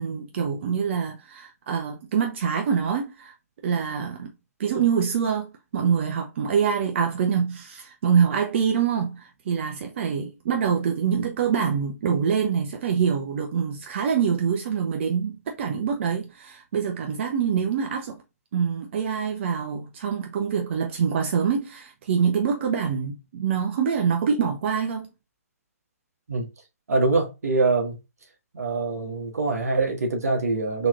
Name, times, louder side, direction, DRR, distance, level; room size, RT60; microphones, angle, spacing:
voice 1, 0.0-3.3 3.6-4.3 4.6-18.2 18.5-25.1, right 7 dB, 50° right, 0.7 m, -25 dB
voice 2, 26.9-28.0 28.5-30.9, right 3 dB, 75° right, 1.4 m, -24 dB
4.0 x 3.1 x 2.4 m
hypercardioid pair, 135°, 8 cm